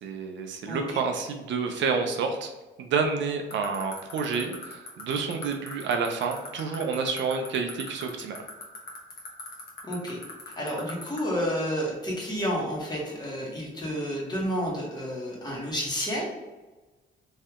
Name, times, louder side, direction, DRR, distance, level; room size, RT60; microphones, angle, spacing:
voice 1, 0.0-2.5 2.8-8.4, right 5 dB, 70° right, 4 dB, 0.5 m, -29 dB
sound 1, 3.5-11.2, left 6 dB, 50° left, 1.1 m, -38 dB
voice 2, 9.8-10.2 10.6-16.3, equal, 20° left, -4 dB, 1.4 m, -30 dB
3.2 x 2.7 x 3.6 m, 1.2 s
cardioid pair, 90°, 20 cm